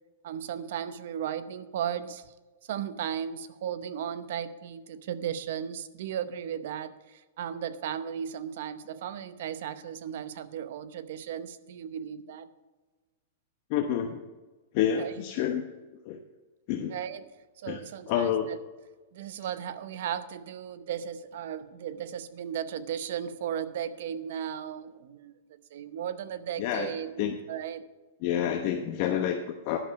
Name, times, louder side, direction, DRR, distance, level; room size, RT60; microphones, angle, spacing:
voice 1, 0.2-2.3 2.6-12.5 15.0-15.1 16.9-17.2 17.6-18.6 19.1-25.3 25.7-27.9, right 9 dB, 60° right, 13 dB, 0.8 m, -36 dB
voice 2, 13.7-14.2 14.7-15.6 16.0-16.2 16.7-17.0 17.7-17.8 18.1-18.5 26.6-27.3 28.2-29.8, left 9 dB, 40° left, 4 dB, 0.9 m, -28 dB
11.0 x 6.8 x 6.4 m, 1.2 s
supercardioid pair, 155°, 0 cm